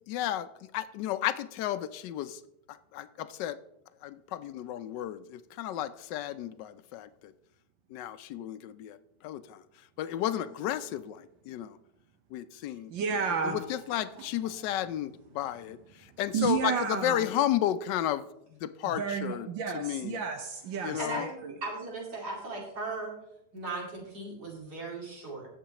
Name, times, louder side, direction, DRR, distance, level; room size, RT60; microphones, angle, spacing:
voice 1, 0.1-0.5 0.7-2.4 2.7-3.6 4.0-7.3 7.9-9.0 9.2-9.6 10.0-11.8 12.3-12.9 13.4-19.5 19.7-20.2 20.8-21.3, left 12 dB, 75° left, 13 dB, 1.2 m, -33 dB
voice 2, 12.9-13.6 14.2-14.5 16.3-17.3 18.9-21.5, right 6 dB, 85° right, 4 dB, 1.7 m, -32 dB
voice 3, 21.0-21.3 21.6-23.1 23.5-25.5, right 2 dB, 60° right, -3 dB, 3.1 m, -37 dB
17.0 x 7.4 x 2.9 m, 0.80 s
omnidirectional pair, 2.0 m